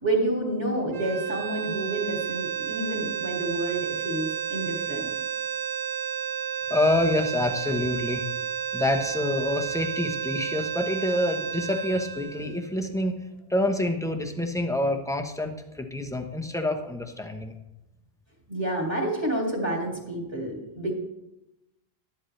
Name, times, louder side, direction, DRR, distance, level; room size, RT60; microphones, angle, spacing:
voice 1, 0.0-5.1 18.5-21.0, right 1 dB, 25° right, -3 dB, 2.2 m, -29 dB
sound 1, 0.9-13.1, right 8 dB, 45° right, 0.6 m, -32 dB
voice 2, 6.7-8.2 8.7-13.1 13.5-17.5, left 1 dB, 5° left, 3 dB, 0.9 m, -27 dB
13.0 x 10.5 x 3.3 m, 0.95 s
omnidirectional pair, 1.0 m